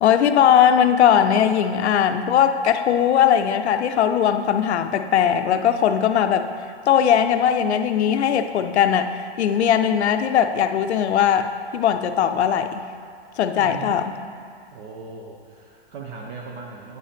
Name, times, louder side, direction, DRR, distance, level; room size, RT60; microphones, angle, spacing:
voice 1, 0.0-6.5 6.9-12.8 13.4-14.0, left 9 dB, 80° left, 9 dB, 0.6 m, -19 dB
voice 2, 13.6-14.1 14.7-17.0, right 4 dB, 45° right, 0 dB, 0.8 m, -38 dB
9.1 x 5.5 x 3.4 m, 2.2 s
hypercardioid pair, 130°, 33 cm